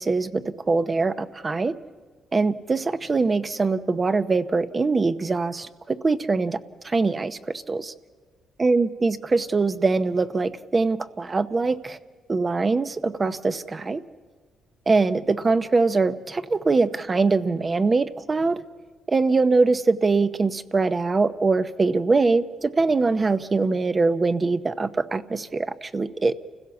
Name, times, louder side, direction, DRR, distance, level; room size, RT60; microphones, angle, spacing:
voice 1, 0.0-1.7 2.3-6.6 6.8-7.9 8.6-12.0 12.3-14.0 14.9-18.6 19.1-26.3, right 3 dB, 30° right, 11 dB, 0.8 m, -23 dB
29.0 x 16.0 x 7.2 m, 1.5 s
cardioid pair, 90°, 0 cm